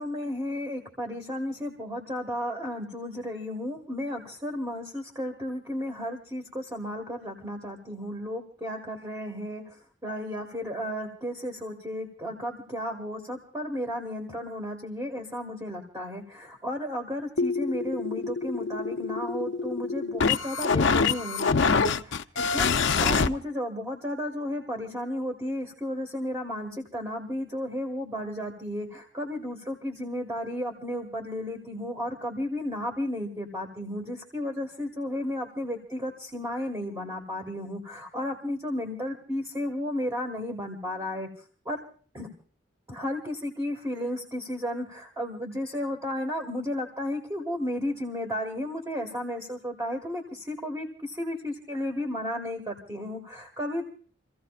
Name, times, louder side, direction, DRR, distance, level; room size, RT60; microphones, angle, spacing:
voice 1, 0.0-9.6 10.0-41.3 41.6-41.8 42.1-42.3 42.9-53.9, left 1 dB, 15° right, 2 dB, 1.7 m, -33 dB
sound 1, 17.4-23.3, left 5 dB, 65° left, 0.6 m, -25 dB
28.5 x 15.0 x 2.4 m, 0.43 s
head